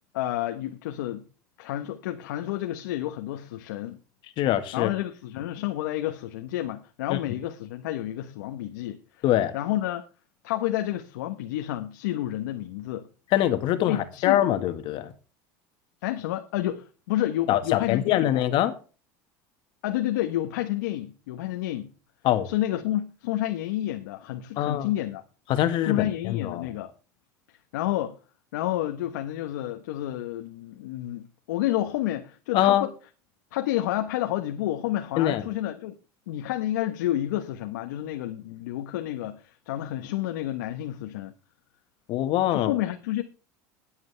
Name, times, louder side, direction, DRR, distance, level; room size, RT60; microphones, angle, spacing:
voice 1, 0.1-1.3 1.6-4.0 4.7-9.2 9.5-10.1 10.4-13.1 13.9-14.4 16.0-18.4 19.8-21.9 22.4-25.2 25.8-26.9 27.7-28.2 28.5-32.9 33.5-36.0 36.3-41.3 42.5-43.2, left 14 dB, 80° left, 1.2 m, -30 dB
voice 2, 4.4-4.9 7.1-7.2 9.2-9.5 13.3-15.1 17.5-18.7 22.2-22.5 24.6-24.9 25.5-26.7 32.5-32.8 35.2-35.4 42.1-42.7, left 12 dB, 60° left, 1.6 m, -23 dB
21.0 x 7.9 x 3.4 m
hypercardioid pair, 90°, 10 cm